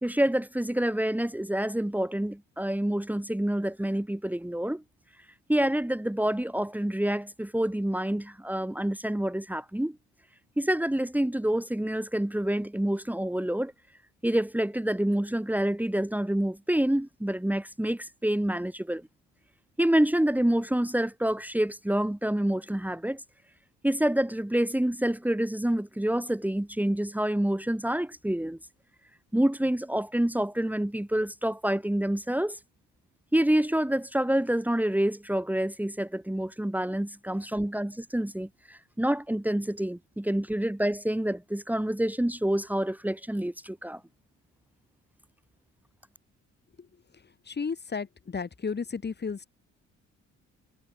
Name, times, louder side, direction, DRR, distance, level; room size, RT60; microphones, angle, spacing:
voice 1, 0.0-4.8 5.5-10.0 10.6-13.7 14.2-19.0 19.8-23.2 23.8-28.6 29.3-32.6 33.3-44.0, right 1 dB, 5° right, 2.6 m, -27 dB
voice 2, 47.5-49.5, left 5 dB, 35° left, 3.1 m, -33 dB
cardioid pair, 90°, 30 cm